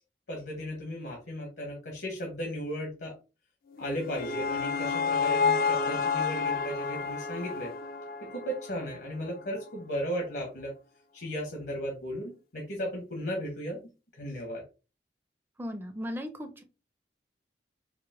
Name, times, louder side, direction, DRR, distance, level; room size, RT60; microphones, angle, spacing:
voice 1, 0.3-3.1 3.8-7.7 8.3-10.7 11.1-13.8 14.1-14.6, equal, 70° left, 1 dB, 1.1 m, -35 dB
sound 1, 3.8-9.0, left 5 dB, 55° left, 0.4 m, -30 dB
voice 2, 15.6-16.6, equal, 15° right, 6 dB, 0.5 m, -37 dB
4.9 x 2.1 x 3.5 m, 0.31 s
head